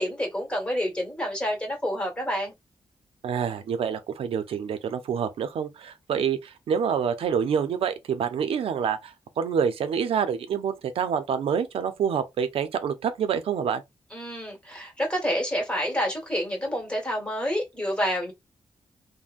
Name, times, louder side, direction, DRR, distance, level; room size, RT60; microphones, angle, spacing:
voice 1, 0.0-2.5 14.1-18.3, equal, 10° left, 1.4 m, -28 dB
voice 2, 3.2-13.8, right 7 dB, 85° right, 0.6 m, -27 dB
3.5 x 2.1 x 2.5 m
wide cardioid pair, 115°, 9 cm